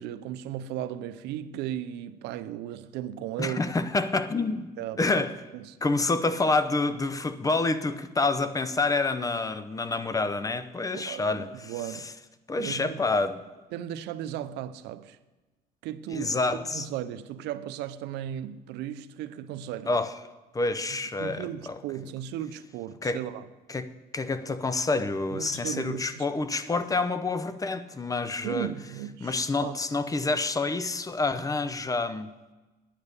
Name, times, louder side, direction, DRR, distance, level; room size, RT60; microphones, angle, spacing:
voice 1, 0.0-3.6 4.8-5.2 5.5-5.8 10.9-12.1 12.6-13.0 13.7-15.2 15.8-16.4 16.7-19.9 21.2-23.5 25.3-26.3 28.4-29.8, right 11 dB, 90° right, 0.6 m, -36 dB
voice 2, 3.4-4.7 5.0-5.4 5.8-11.7 12.5-13.4 16.1-16.9 19.9-20.1 20.5-21.8 23.0-23.2 23.7-28.7 29.2-32.3, left 3 dB, 20° left, 0.7 m, -28 dB
9.8 x 9.0 x 6.6 m
cardioid pair, 110°, 17 cm